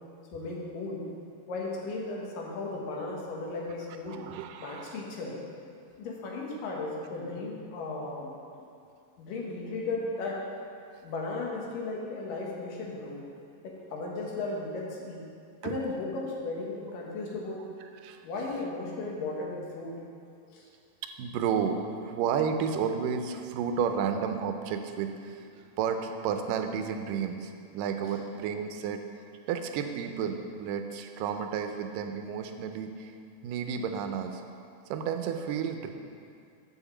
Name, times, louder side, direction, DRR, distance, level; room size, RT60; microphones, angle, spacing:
voice 1, 0.3-1.0 1.5-4.2 4.6-5.4 6.0-8.3 9.2-10.4 11.0-13.2 13.6-15.2 15.6-17.6 18.2-20.0 20.5-20.6, left 3 dB, 85° left, -2 dB, 2.9 m, -35 dB
voice 2, 4.1-5.0 15.6-15.8 17.9-18.2 21.0-29.0 29.5-33.1 33.4-34.4 34.9-35.9, right 7 dB, 85° right, 6 dB, 2.2 m, -32 dB
7.8 x 5.7 x 7.1 m, 2.4 s
omnidirectional pair, 3.8 m